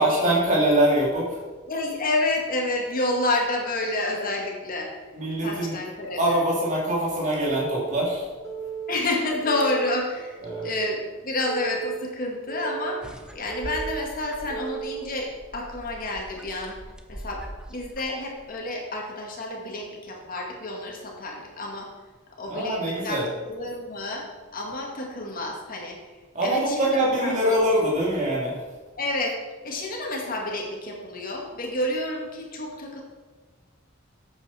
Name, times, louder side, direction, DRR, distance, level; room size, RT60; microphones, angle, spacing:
voice 1, 0.0-1.4 5.1-5.8 6.2-8.2 10.4-10.7 22.4-23.3 26.3-28.6, right 1 dB, 40° right, -5 dB, 3.2 m, -23 dB
voice 2, 1.7-4.9 5.4-6.2 8.9-16.8 17.1-17.4 17.7-21.9 22.4-23.2 23.5-24.2 24.5-26.0 26.4-26.9 27.2-27.6 29.0-29.3 29.6-33.0, left 2 dB, 45° left, 0 dB, 2.1 m, -29 dB
Telephone, 7.4-7.9 8.4-9.0 9.4-10.0 10.5-11.0 11.5-12.0 12.5-13.0 13.5-14.0 14.5-15.0, right 7 dB, 15° left, 2.1 m, -34 dB
sound 1, 13.0-18.6, equal, 5° right, 0.8 m, -42 dB
12.0 x 8.4 x 4.4 m, 1.3 s
head